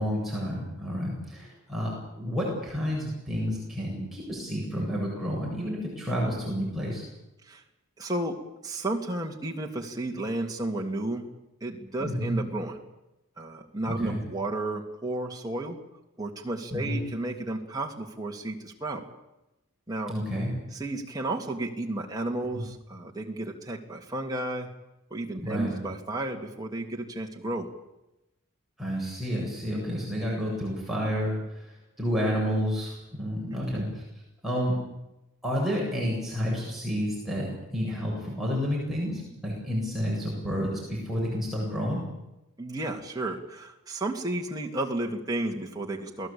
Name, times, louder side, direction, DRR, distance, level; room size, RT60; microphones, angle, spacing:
voice 1, 0.0-7.0 12.0-12.4 13.9-14.2 16.7-17.0 20.1-20.5 25.4-25.7 28.8-34.0 34.4-34.8 35.4-42.0, equal, ahead, -5 dB, 8.0 m, -30 dB
voice 2, 8.0-8.4 8.6-11.2 11.6-12.8 13.4-15.8 16.2-19.0 19.9-20.1 20.7-24.7 25.1-27.7 33.5-33.9 42.6-46.3, right 2 dB, 15° right, 0 dB, 2.9 m, -32 dB
28.5 x 19.0 x 8.8 m, 0.95 s
head